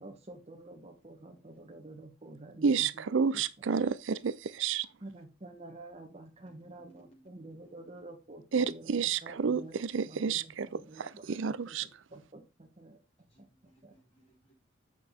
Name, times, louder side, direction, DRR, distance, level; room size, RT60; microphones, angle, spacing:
voice 1, 0.0-2.9 3.3-3.4 5.0-9.7 10.1-10.4 10.7-11.2 11.7-13.0 13.4-13.5 13.8-13.9, right 2 dB, 35° right, 1.3 m, -49 dB
voice 2, 2.6-4.9 8.5-11.9, right 6 dB, 70° right, 0.5 m, -30 dB
voice 3, 6.4-7.9 13.3-14.5, right 1 dB, 35° left, 5.7 m, -64 dB
7.9 x 6.6 x 3.6 m
head